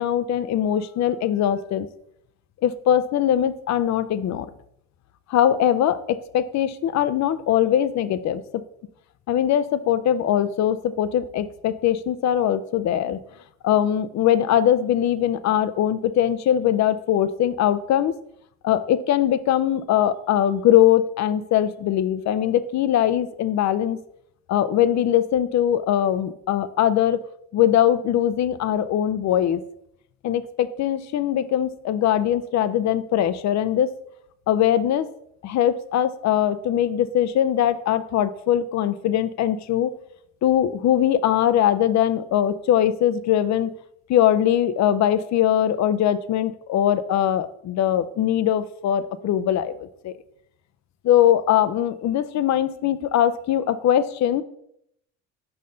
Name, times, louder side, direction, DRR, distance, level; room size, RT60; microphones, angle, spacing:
voice 1, 0.0-1.9 2.6-4.5 5.3-8.6 9.3-13.2 13.6-18.1 18.6-24.0 24.5-27.2 27.5-29.6 30.2-33.9 34.5-35.1 35.4-39.9 40.4-43.7 44.1-50.1 51.0-54.4, left 10 dB, 55° left, 13 dB, 0.5 m, -21 dB
5.6 x 5.3 x 3.8 m, 0.74 s
supercardioid pair, 80°, 34 cm